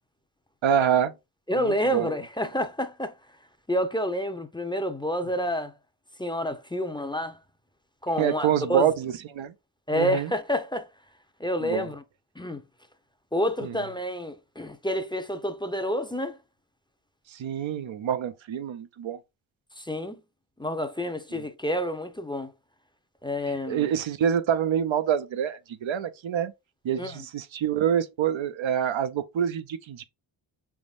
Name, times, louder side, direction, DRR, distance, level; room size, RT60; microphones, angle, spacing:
voice 1, 0.6-1.1 1.6-2.1 8.2-9.5 9.9-10.3 11.6-11.9 13.6-13.8 17.3-19.2 23.7-26.5 26.8-30.0, right 9 dB, 75° right, 0.6 m, -26 dB
voice 2, 1.5-3.1 3.7-5.7 6.2-7.4 8.0-8.9 9.9-10.9 11.4-12.0 12.4-12.6 13.3-16.4 19.8-20.2 20.6-22.5 23.2-23.9 27.0-27.2, equal, 10° left, 0.6 m, -29 dB
4.9 x 3.6 x 2.4 m
cardioid pair, 50°, 47 cm